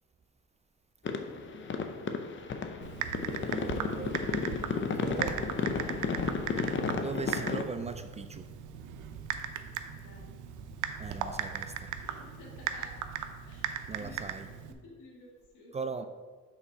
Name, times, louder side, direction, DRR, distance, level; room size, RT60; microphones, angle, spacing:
sound 1, 1.0-7.6, left 5 dB, 40° left, 0.7 m, -33 dB
Typing, 2.8-14.7, right 8 dB, 85° right, 0.6 m, -38 dB
voice 1, 3.5-5.4 6.9-8.5 11.0-11.9 13.9-14.5 15.7-16.1, right 4 dB, 20° right, 0.4 m, -39 dB
voice 2, 10.0-10.3 12.2-13.0 13.5-14.2 14.7-15.8, left 2 dB, 90° left, 2.1 m, -53 dB
5.8 x 4.0 x 5.5 m
cardioid pair, 90°, 30 cm